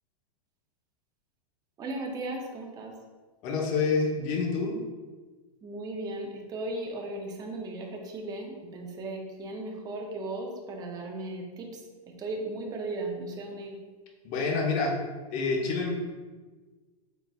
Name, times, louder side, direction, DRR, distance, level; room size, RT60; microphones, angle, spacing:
voice 1, 1.8-3.0 5.6-13.8, right 2 dB, 20° right, 1 dB, 0.6 m, -36 dB
voice 2, 3.4-4.7 14.2-14.9 15.3-15.9, left 4 dB, 40° left, 0 dB, 0.9 m, -27 dB
4.0 x 3.9 x 2.3 m, 1.3 s
hypercardioid pair, 130°, 20 cm